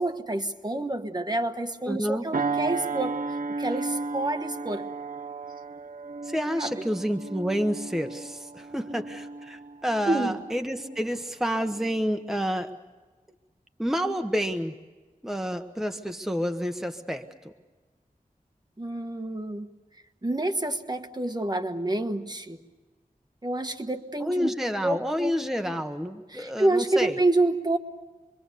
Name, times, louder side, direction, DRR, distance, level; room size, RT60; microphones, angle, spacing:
voice 1, 0.0-3.2 3.6-4.8 6.6-6.7 10.1-10.4 18.8-19.7 20.2-22.6 23.4-24.5 24.8-25.3 26.3-27.8, right 2 dB, 30° right, 6 dB, 1.4 m, -28 dB
voice 2, 1.9-2.3 6.2-12.7 13.8-14.8 15.2-17.3 24.2-27.2, equal, ahead, 6 dB, 1.2 m, -29 dB
sound 1, 2.3-11.2 11.6-11.9, right 4 dB, 75° right, 1.0 m, -34 dB
26.5 x 23.5 x 6.8 m, 1.3 s
wide cardioid pair, 65°, 15 cm